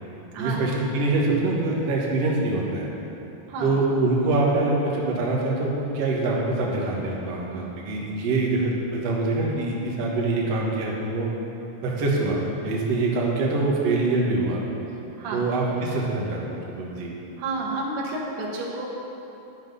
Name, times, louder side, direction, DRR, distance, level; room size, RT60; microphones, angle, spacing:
voice 1, 0.4-2.9 3.6-11.3 11.8-14.6 15.3-17.2, right 2 dB, 55° right, -3 dB, 2.0 m, -24 dB
voice 2, 17.4-18.9, right 3 dB, 70° right, -3 dB, 3.3 m, -30 dB
10.0 x 9.6 x 5.5 m, 2.9 s
omnidirectional pair, 4.7 m